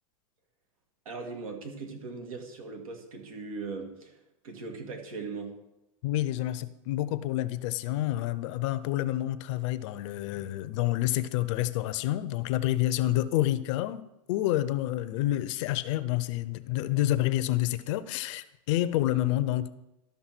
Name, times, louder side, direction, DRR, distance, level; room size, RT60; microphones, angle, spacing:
voice 1, 1.1-5.5, right 4 dB, 85° right, 1.9 m, -39 dB
voice 2, 6.0-14.0 14.3-19.7, left 14 dB, 60° left, 0.6 m, -28 dB
12.5 x 5.5 x 4.5 m
supercardioid pair, 125°, 18 cm